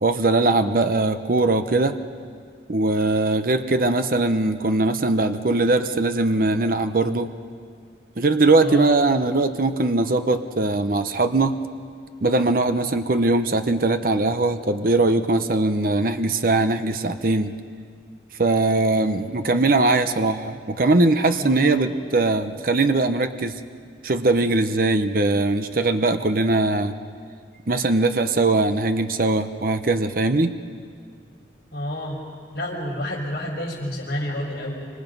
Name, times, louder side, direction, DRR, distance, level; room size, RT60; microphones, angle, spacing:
voice 1, 0.0-2.0 2.7-7.3 8.2-11.6 12.2-17.5 18.4-23.6 24.0-26.9 27.7-30.5, right 2 dB, 50° right, 9 dB, 0.8 m, -20 dB
voice 2, 8.6-8.9 21.3-21.8 27.5-27.7 31.7-32.2 32.5-34.9, left 1 dB, 55° left, -3 dB, 5.5 m, -29 dB
29.0 x 25.5 x 5.4 m, 2.1 s
head